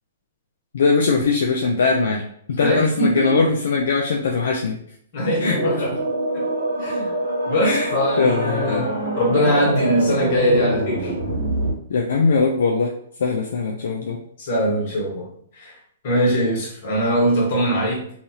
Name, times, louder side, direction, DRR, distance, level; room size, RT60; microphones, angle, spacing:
voice 1, 0.7-2.2 2.6-4.8 5.4-5.6 7.6-7.9 8.2-8.8 11.9-12.9 13.2-14.2, left 4 dB, 75° left, 0 dB, 0.4 m, -20 dB
voice 2, 2.6-3.5 5.1-6.0 6.3-6.4 6.8-7.1 7.5-11.1 14.4-15.3 15.5-15.8 16.0-18.0, equal, 50° left, -3 dB, 1.3 m, -21 dB
sound 1, 5.2-11.7, right 1 dB, 85° right, 1.0 m, -25 dB
2.6 x 2.4 x 2.8 m, 0.65 s
hypercardioid pair, 135°, 0 cm